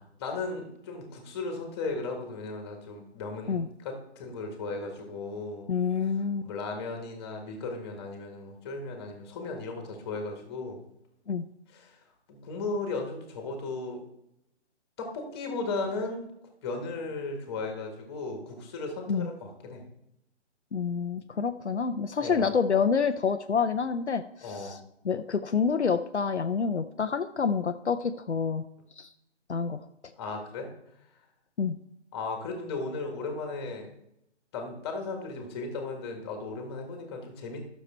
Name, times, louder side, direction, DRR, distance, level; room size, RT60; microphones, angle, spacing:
voice 1, 0.0-5.7 6.4-10.8 11.7-12.0 12.3-14.0 15.0-16.3 16.6-19.8 22.2-22.6 24.4-24.8 30.2-30.7 32.1-33.9 34.5-37.6, left 3 dB, 20° left, 3 dB, 1.8 m, -36 dB
voice 2, 5.7-6.5 11.3-11.4 19.1-19.3 20.7-24.8 25.0-28.6 29.0-29.1 29.5-29.8 31.6-31.8, left 6 dB, 70° left, 8 dB, 0.7 m, -28 dB
12.0 x 6.7 x 4.3 m, 0.83 s
figure-of-eight pair, 150°, 36 cm